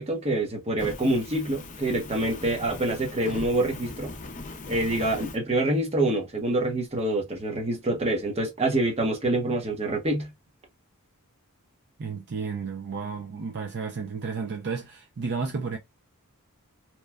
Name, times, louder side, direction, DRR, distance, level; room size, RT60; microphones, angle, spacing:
voice 1, 0.0-4.1 4.7-10.3, right 1 dB, 30° right, 0.8 m, -26 dB
Fire, 0.8-5.4, left 3 dB, 35° left, 0.5 m, -39 dB
voice 2, 12.0-15.8, right 5 dB, 50° right, 0.4 m, -32 dB
3.0 x 2.2 x 2.2 m
head